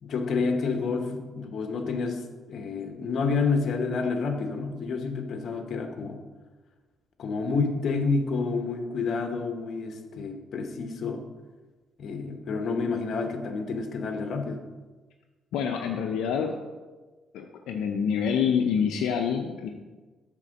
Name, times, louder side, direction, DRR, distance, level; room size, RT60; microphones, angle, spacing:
voice 1, 0.0-6.2 7.2-11.3 12.0-14.6, left 4 dB, 60° left, 5 dB, 1.0 m, -29 dB
voice 2, 15.5-16.6 17.3-19.7, left 7 dB, 90° left, 3 dB, 0.5 m, -26 dB
8.4 x 3.7 x 6.4 m, 1.3 s
cardioid pair, 90°, 0 cm